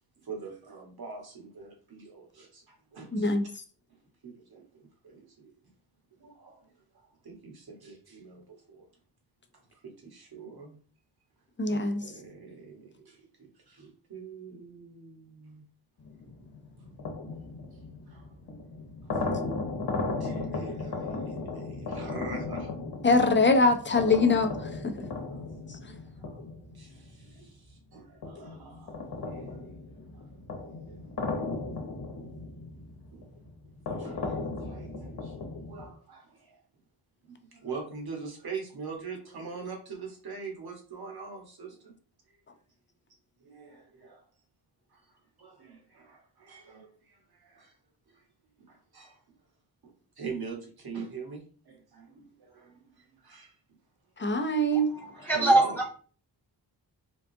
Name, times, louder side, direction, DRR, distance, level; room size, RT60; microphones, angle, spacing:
voice 1, 0.2-3.3 4.2-5.6 6.2-8.9 9.8-10.8 11.7-15.6 18.1-18.3 19.0-19.2 20.2-22.7 25.3-26.4 26.7-29.7 30.1-30.3 30.9-31.0 31.5-31.6 33.1-33.2 33.9-36.6 37.2-41.9 42.3-42.4 43.4-44.3 44.9-45.0 45.4-47.7 48.1-48.2 48.6-49.2 49.8-53.5 54.2-54.3 55.1-55.8, right 5 dB, 55° right, 1 dB, 1.3 m, -44 dB
voice 2, 3.1-3.5 11.6-12.0 23.0-24.6 24.8-24.9 25.7-25.8 54.2-54.9, left 2 dB, 25° left, 6 dB, 0.5 m, -23 dB
sound 1, 16.0-27.7 28.2-35.9, left 3 dB, 60° left, 1.0 m, -36 dB
voice 3, 54.7-55.9, right 2 dB, 5° left, -2 dB, 0.9 m, -24 dB
3.7 x 2.3 x 2.6 m, 0.40 s
cardioid pair, 60°, 44 cm